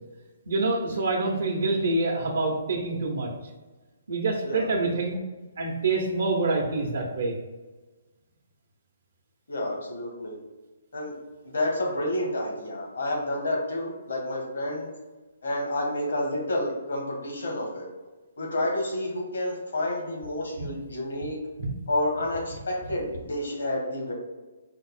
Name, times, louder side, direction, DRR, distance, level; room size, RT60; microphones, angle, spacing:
voice 1, 0.5-3.3 4.1-5.2 5.6-7.3 21.6-21.7, right 3 dB, 75° right, -1 dB, 0.8 m, -26 dB
voice 2, 9.5-10.4 10.9-11.1 11.4-14.9 15.4-17.8 18.4-21.4 21.9-24.1, left 1 dB, 80° left, -1 dB, 1.3 m, -29 dB
5.0 x 2.0 x 4.1 m, 1.2 s
hypercardioid pair, 150°, 0 cm